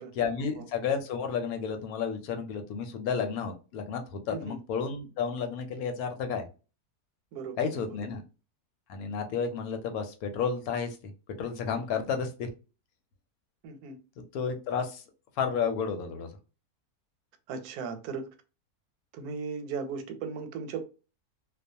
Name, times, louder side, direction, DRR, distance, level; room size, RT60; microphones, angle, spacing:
voice 1, 0.2-6.4 7.6-8.2 8.9-11.0 11.4-12.5 14.3-15.0 15.4-16.3, left 6 dB, 80° left, 1.1 m, -31 dB
voice 2, 4.3-4.6 7.3-8.0 11.7-11.8 13.6-14.0 17.5-18.3 19.1-20.8, right 5 dB, 90° right, 1.1 m, -37 dB
2.3 x 2.3 x 2.6 m
omnidirectional pair, 1.6 m